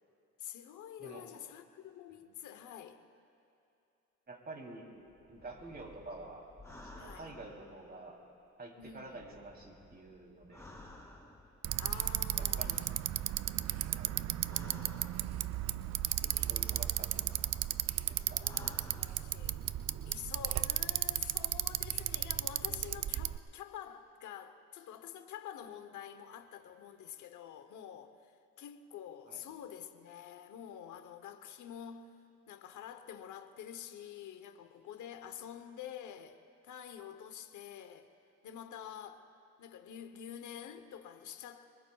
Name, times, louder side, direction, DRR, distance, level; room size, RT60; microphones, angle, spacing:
voice 1, 0.4-3.0 7.0-7.3 8.8-9.2 11.8-13.0 16.2-16.8 18.4-19.6 20.1-32.2 32.5-36.4 36.6-38.1 38.4-39.2 39.6-41.6, left 9 dB, 75° left, 1.0 m, -48 dB
voice 2, 4.3-4.9 5.3-6.4 6.9-8.2 8.6-10.7 12.3-12.9 13.8-14.2 14.5-15.0 16.2-17.4 18.0-18.5 29.3-29.4, right 2 dB, 30° right, 3.2 m, -49 dB
sound 1, 5.1-8.3 8.8-11.8 12.6-15.9 16.4-19.8 20.1-20.2, left 2 dB, 10° left, 2.4 m, -55 dB
Bicycle, 11.6-23.4, right 12 dB, 60° right, 0.5 m, -35 dB
25.5 x 23.0 x 2.4 m
cardioid pair, 90°, 30 cm